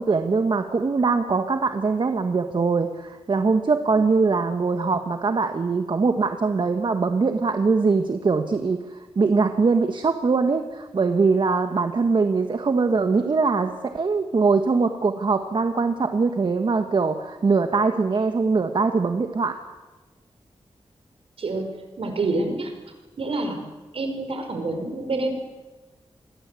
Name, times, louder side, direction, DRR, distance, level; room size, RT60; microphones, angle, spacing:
voice 1, 0.0-19.6, right 4 dB, 50° right, 6 dB, 1.5 m, -22 dB
voice 2, 21.4-22.7 23.2-23.7 23.9-25.3, right 2 dB, 65° right, 6 dB, 5.3 m, -27 dB
27.5 x 22.0 x 8.5 m, 1.2 s
wide cardioid pair, 170°, 11 cm